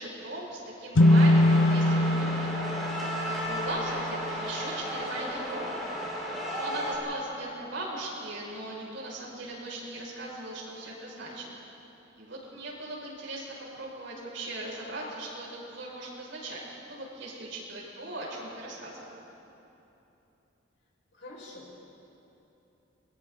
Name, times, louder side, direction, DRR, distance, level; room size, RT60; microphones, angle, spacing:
voice 1, 0.0-2.5 3.2-5.8 6.6-11.5 12.2-13.5 13.7-19.1, right 1 dB, 80° right, -5 dB, 6.6 m, -38 dB
sound 1, 0.9-4.5, left 1 dB, 90° left, 0.7 m, -23 dB
sound 2, 1.0-6.9, equal, ahead, 6.5 m, -34 dB
voice 2, 21.1-21.7, left 2 dB, 65° left, -4 dB, 6.1 m, -46 dB
29.5 x 22.5 x 4.1 m, 3.0 s
head